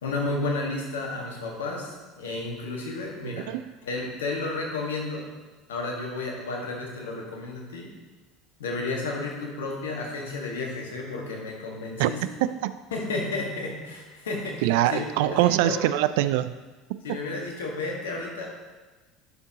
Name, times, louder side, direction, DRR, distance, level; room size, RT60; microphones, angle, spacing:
voice 1, 0.0-3.5 3.8-5.3 5.7-7.9 8.6-12.2 12.9-14.6 14.9-15.8 17.0-18.5, left 3 dB, 75° left, 0 dB, 1.6 m, -32 dB
voice 2, 3.2-3.7 12.0-12.1 12.4-12.8 14.6-16.5 16.9-17.2, right 13 dB, 65° right, 13 dB, 0.3 m, -24 dB
10.5 x 6.7 x 2.9 m, 1.3 s
figure-of-eight pair, 70°, 0 cm